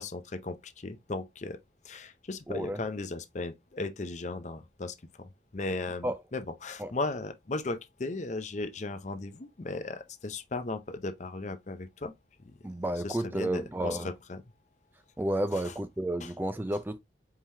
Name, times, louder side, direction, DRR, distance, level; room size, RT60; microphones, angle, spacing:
voice 1, 0.0-1.6 1.8-12.1 12.4-12.6 13.0-14.4 15.6-15.7 16.2-16.3, left 2 dB, 40° left, 0.6 m, -36 dB
voice 2, 2.5-2.8 6.0-6.2 6.8-6.9 12.6-14.1 15.2-17.0, right 1 dB, 10° right, 0.3 m, -31 dB
4.6 x 3.7 x 2.6 m
head